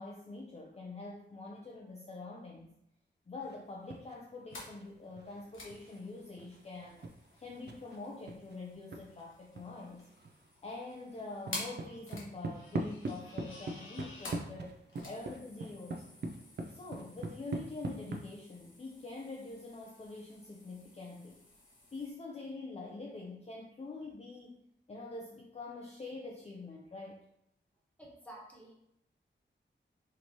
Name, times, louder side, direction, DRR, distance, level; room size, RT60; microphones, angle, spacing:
voice 1, 0.0-2.7 3.3-7.1 7.4-10.1 10.6-16.1 16.7-21.4 21.9-24.6 24.9-27.2, left 3 dB, 35° left, -1 dB, 0.5 m, -45 dB
sound 1, 3.4-4.2 4.5-9.1 9.5-9.6 9.9-10.5 10.7-18.2, right 2 dB, 60° right, 0.5 m, -42 dB
sound 2, 4.5-22.1, left 2 dB, 85° left, 1.1 m, -51 dB
voice 2, 28.0-28.7, right 1 dB, 5° left, -3 dB, 1.2 m, -50 dB
4.4 x 3.1 x 2.8 m, 0.76 s
wide cardioid pair, 105°, 20 cm